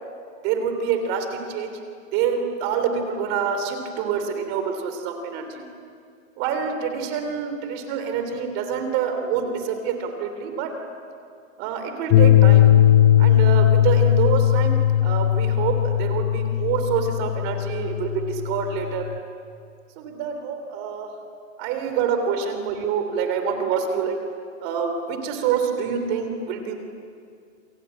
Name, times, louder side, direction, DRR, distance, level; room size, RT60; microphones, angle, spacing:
voice 1, 0.4-1.8 2.1-5.7 6.4-10.8 11.6-12.7 13.2-19.1 20.0-21.1 21.6-24.2 24.6-26.7, right 7 dB, 30° right, 6 dB, 3.2 m, -26 dB
sound 1, 12.1-19.2, left 12 dB, 20° left, 0.7 m, -18 dB
28.0 x 24.0 x 8.7 m, 2.3 s
hypercardioid pair, 165°, 39 cm